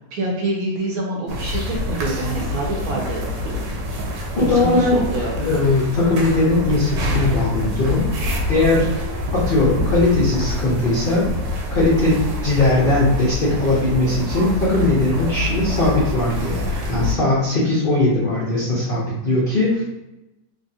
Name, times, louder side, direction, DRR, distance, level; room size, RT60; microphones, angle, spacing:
voice 1, 0.1-3.8 4.4-5.3, right 1 dB, 70° right, -2 dB, 1.0 m, -26 dB
sound 1, 1.3-17.1, left 1 dB, 85° right, 1.2 m, -26 dB
voice 2, 4.4-5.0 5.4-8.9 9.3-11.3 11.7-19.8, left 2 dB, 70° left, -6 dB, 0.5 m, -19 dB
3.1 x 2.4 x 2.6 m, 0.95 s
omnidirectional pair, 1.9 m